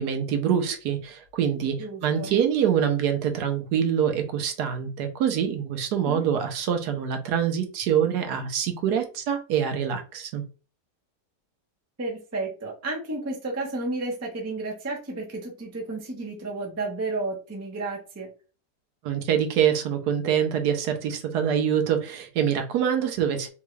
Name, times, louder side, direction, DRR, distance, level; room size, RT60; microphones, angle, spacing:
voice 1, 0.0-10.4 19.0-23.5, right 8 dB, 75° right, 1.2 m, -25 dB
voice 2, 1.8-2.3 6.0-6.3 12.0-18.3, right 2 dB, 15° right, 0.5 m, -32 dB
3.5 x 2.3 x 3.1 m
omnidirectional pair, 1.8 m